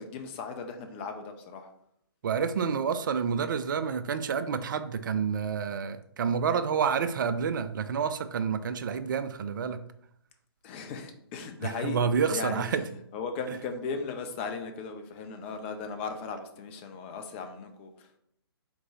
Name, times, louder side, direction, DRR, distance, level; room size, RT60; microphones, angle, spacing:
voice 1, 0.0-1.7 10.6-12.6 13.1-18.2, left 4 dB, 25° left, 6 dB, 0.5 m, -37 dB
voice 2, 2.2-9.8 11.6-12.9, right 6 dB, 50° right, 10 dB, 0.4 m, -29 dB
3.7 x 3.1 x 3.7 m, 0.71 s
figure-of-eight pair, 135°, 13 cm